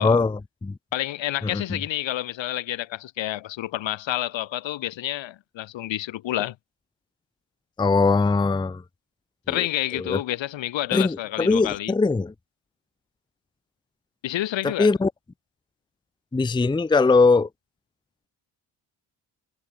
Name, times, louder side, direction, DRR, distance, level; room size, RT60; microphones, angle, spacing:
voice 1, 0.0-0.7 1.4-1.8 7.8-8.8 9.5-9.6 9.9-10.2 10.9-12.3 14.6-15.1 16.3-17.5, left 3 dB, 10° left, 0.6 m, -21 dB
voice 2, 0.9-6.6 9.5-11.9 14.2-14.9, left 14 dB, 80° left, 4.0 m, -29 dB
cardioid pair, 75°, 44 cm